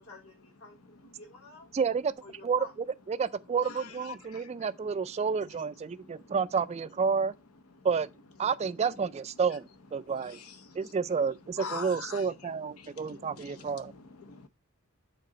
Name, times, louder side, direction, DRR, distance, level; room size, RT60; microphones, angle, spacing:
voice 1, 0.0-1.7 2.2-2.7, left 1 dB, 70° left, 3.1 m, -50 dB
voice 2, 1.7-2.1 2.4-2.6 3.1-7.3 7.8-8.1 8.4-10.4 10.7-13.9, right 5 dB, 30° right, 0.3 m, -30 dB
voice 3, 4.3-4.7 5.9-6.3 7.8-7.9 10.2-10.8 11.6-12.3 12.8-14.5, left 4 dB, 85° left, 0.9 m, -44 dB
6.7 x 4.0 x 4.9 m
head